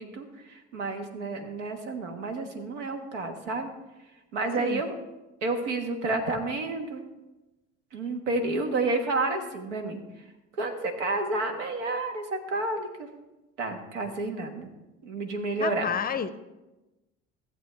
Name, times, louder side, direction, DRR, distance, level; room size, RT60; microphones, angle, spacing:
voice 1, 0.0-3.7 4.3-4.9 5.4-7.0 7.9-10.0 10.5-13.1 13.6-14.7 15.0-15.9, right 2 dB, 80° right, 5 dB, 1.3 m, -30 dB
voice 2, 15.6-16.4, left 7 dB, 25° left, 13 dB, 0.6 m, -30 dB
15.0 x 7.8 x 3.3 m, 1.0 s
hypercardioid pair, 60°, 35 cm